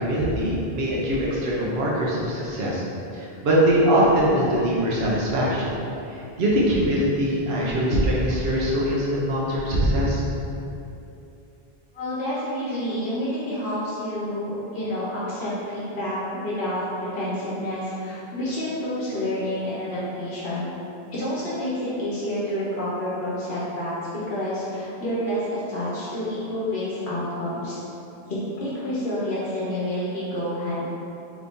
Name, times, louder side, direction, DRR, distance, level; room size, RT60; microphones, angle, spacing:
voice 1, 0.0-2.8 3.1-5.7 6.1-10.2, equal, 75° right, -6 dB, 0.9 m, -22 dB
voice 2, 11.9-20.7 21.1-23.9 24.3-27.8 28.3-30.8, left 1 dB, 70° left, -8 dB, 0.9 m, -29 dB
3.1 x 2.6 x 3.5 m, 2.8 s
omnidirectional pair, 1.0 m